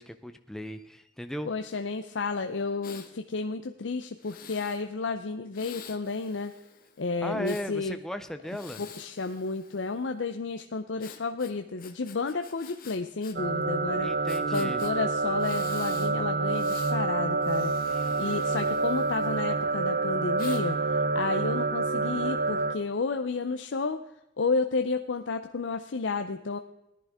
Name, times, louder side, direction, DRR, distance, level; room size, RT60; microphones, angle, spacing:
voice 1, 0.0-1.5 7.2-8.8 14.0-14.8 17.8-18.7, equal, 5° left, 8 dB, 0.6 m, -37 dB
voice 2, 1.5-6.5 7.0-8.0 8.8-14.1 14.5-17.7 18.2-20.8 21.1-24.0 24.4-26.6, left 4 dB, 70° left, 7 dB, 0.6 m, -31 dB
Breathing, 2.8-3.1 4.2-4.8 5.5-7.7 8.4-10.1 11.0-13.4 13.6-13.7 14.3-14.9 15.4-16.1 16.5-17.0 17.4-19.6 20.4-20.6, left 7 dB, 50° left, 1.4 m, -48 dB
sound 1, 13.4-22.8, right 3 dB, 55° right, 0.7 m, -28 dB
17.0 x 11.0 x 3.6 m, 0.92 s
head